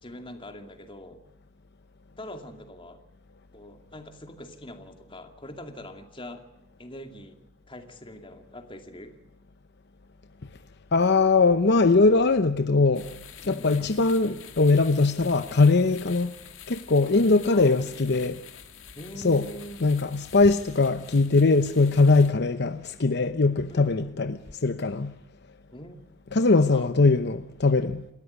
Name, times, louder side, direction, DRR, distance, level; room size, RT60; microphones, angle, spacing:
voice 1, 0.0-1.2 2.2-3.0 3.5-6.4 6.8-7.4 7.7-9.2 13.4-13.7 16.7-17.8 18.9-19.8 23.7-24.0 25.7-26.1 26.6-26.9, left 1 dB, 25° left, 2.4 m, -43 dB
voice 2, 10.9-13.1 13.5-16.3 16.7-18.4 19.2-19.5 19.8-25.1 26.3-28.0, left 3 dB, 55° left, 0.8 m, -21 dB
sound 1, 12.9-22.3, left 8 dB, 75° left, 2.3 m, -47 dB
29.0 x 13.5 x 9.6 m
head